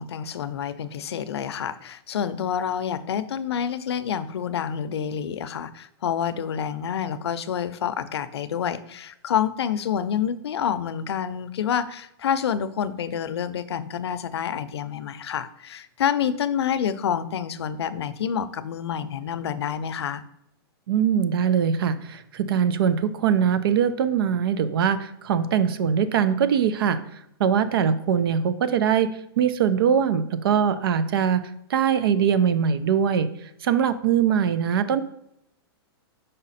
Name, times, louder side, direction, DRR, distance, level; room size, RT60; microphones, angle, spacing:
voice 1, 0.0-20.2, left 8 dB, 85° left, 13 dB, 0.6 m, -28 dB
voice 2, 20.9-27.0 27.4-29.1 29.4-31.4 31.7-33.3 33.6-35.0, right 8 dB, 65° right, 13 dB, 0.6 m, -22 dB
5.4 x 5.1 x 4.1 m, 0.77 s
hypercardioid pair, 155°, 13 cm